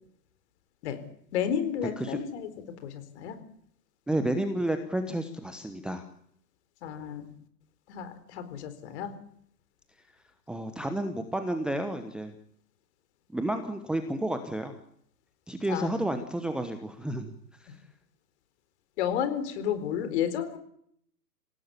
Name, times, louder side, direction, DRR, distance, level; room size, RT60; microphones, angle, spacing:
voice 1, 1.3-2.5 2.8-3.4 6.8-7.3 7.9-9.2 15.7-15.9 17.7-17.8 19.0-20.6, left 9 dB, 40° left, 10 dB, 4.3 m, -31 dB
voice 2, 4.1-6.1 10.5-12.3 13.3-14.8 15.5-17.3 17.6-17.8, right 1 dB, ahead, 6 dB, 1.0 m, -31 dB
27.0 x 17.5 x 8.5 m, 0.68 s
figure-of-eight pair, 120°, 50 cm